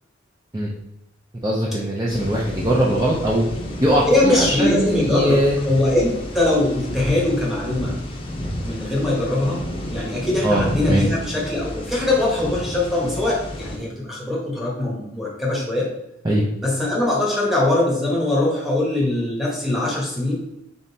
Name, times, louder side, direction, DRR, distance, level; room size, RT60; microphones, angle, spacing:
voice 1, 1.4-3.5 3.8-5.6 10.4-11.0 16.2-16.5, right 1 dB, 20° right, -4 dB, 0.5 m, -20 dB
sound 1, 2.1-13.8, left 1 dB, 30° left, 0.6 m, -31 dB
voice 2, 4.1-5.4 5.7-8.0 8.6-9.6 9.9-15.9 16.6-20.3, left 2 dB, ahead, -5 dB, 1.1 m, -21 dB
4.0 x 3.7 x 2.7 m, 0.88 s
head